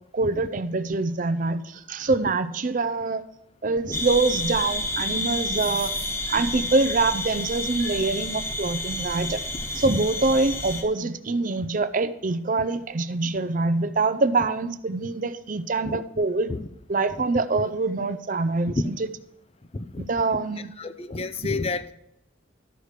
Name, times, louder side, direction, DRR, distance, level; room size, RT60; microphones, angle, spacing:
voice 1, 0.1-3.2 3.6-5.9 6.3-9.4 9.8-16.5 16.9-18.9 20.0-20.7, right 3 dB, 40° right, 13 dB, 0.5 m, -25 dB
sound 1, 3.9-10.8, left 1 dB, 15° left, 1.3 m, -30 dB
voice 2, 19.7-20.4 20.8-21.9, left 3 dB, 30° left, 11 dB, 0.5 m, -30 dB
12.0 x 4.9 x 6.6 m, 0.77 s
head